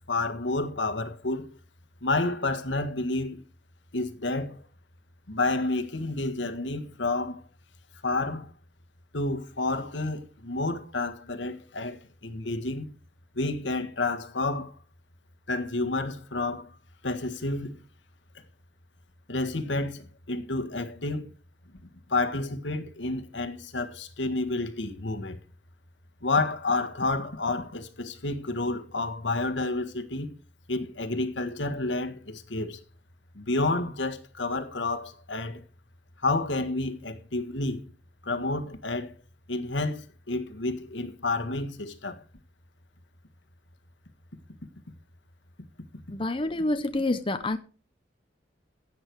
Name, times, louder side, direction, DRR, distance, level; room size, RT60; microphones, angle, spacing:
voice 1, 0.1-1.5 2.0-3.4 3.9-4.6 5.3-7.4 8.0-8.5 9.1-12.9 13.4-14.7 15.5-16.7 17.0-17.8 19.3-21.3 22.1-25.4 26.2-30.4 30.7-32.8 33.4-35.6 36.2-37.8 38.2-39.2 39.5-42.2, left 2 dB, 75° left, 1.7 m, -30 dB
voice 2, 46.1-47.6, left 2 dB, 30° left, 0.8 m, -27 dB
16.0 x 8.7 x 4.7 m
head